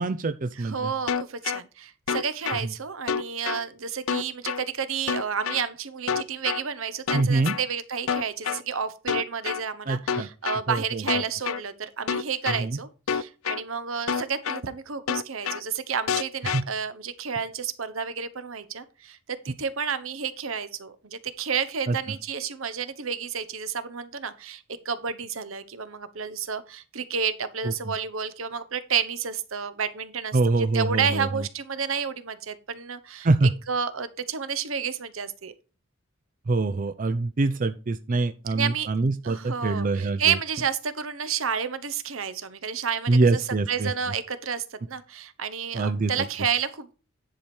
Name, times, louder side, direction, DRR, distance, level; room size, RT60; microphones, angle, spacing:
voice 1, 0.0-0.9 7.1-7.5 9.9-10.3 10.7-11.0 12.6-12.8 16.5-16.6 21.9-22.0 27.6-27.7 30.3-31.4 33.2-33.5 36.5-40.4 43.1-43.9 45.7-46.1, right 3 dB, 40° right, 0.5 m, -24 dB
voice 2, 0.6-33.3 33.7-35.5 38.5-38.9 39.2-43.4 43.7-46.9, right 6 dB, 75° right, 1.0 m, -30 dB
sound 1, 1.1-1.6 2.1-2.6 3.1-3.6 4.1-4.6 5.1-5.6 6.1-6.6 7.1-7.6 8.1-8.6 9.1-9.6 10.1-10.6 11.1-11.6 12.1-12.6 13.1-13.6 14.1-14.6 15.1-15.6 16.1-16.6, left 7 dB, 85° left, 0.5 m, -27 dB
10.5 x 4.9 x 4.5 m
head